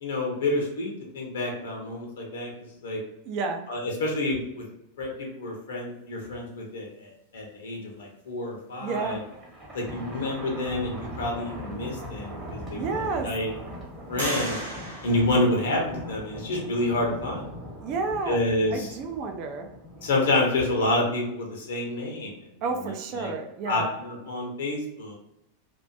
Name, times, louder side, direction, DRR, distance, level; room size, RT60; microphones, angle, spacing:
voice 1, 0.0-2.5 2.8-3.0 3.7-4.6 5.0-9.2 9.7-13.5 14.1-14.6 15.0-17.4 18.3-18.9 20.0-22.3 23.1-23.3 23.7-25.1, left 2 dB, 60° left, 0 dB, 0.6 m, -28 dB
voice 2, 3.2-3.7 8.8-9.2 12.7-13.3 17.8-18.4 18.7-19.7 22.6-24.0, right 4 dB, 40° right, 5 dB, 0.4 m, -30 dB
Thunder, 8.9-20.7, equal, 15° right, 0.9 m, -41 dB
sound 1, 11.9-12.0 12.6-13.3 14.2-16.1, right 1 dB, 70° right, 0.8 m, -36 dB
2.4 x 2.1 x 2.5 m, 0.85 s
figure-of-eight pair, 90°, 0 cm